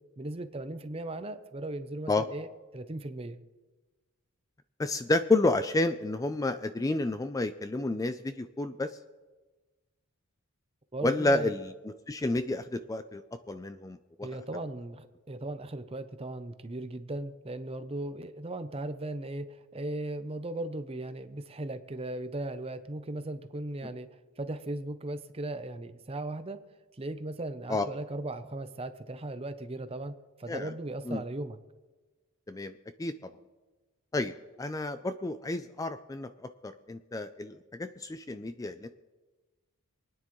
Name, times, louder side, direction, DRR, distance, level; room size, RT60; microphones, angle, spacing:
voice 1, 0.2-2.5 2.7-3.4 10.9-11.5 14.2-26.6 27.0-31.6, right 2 dB, 25° right, 10 dB, 0.6 m, -37 dB
voice 2, 4.8-9.0 11.0-11.7 12.1-13.2 13.5-14.3 27.7-27.9 30.5-30.7 31.1-31.2 32.5-33.3 34.1-34.3 34.6-38.9, left 2 dB, 15° left, 10 dB, 0.3 m, -30 dB
27.5 x 9.8 x 3.1 m, 1.3 s
head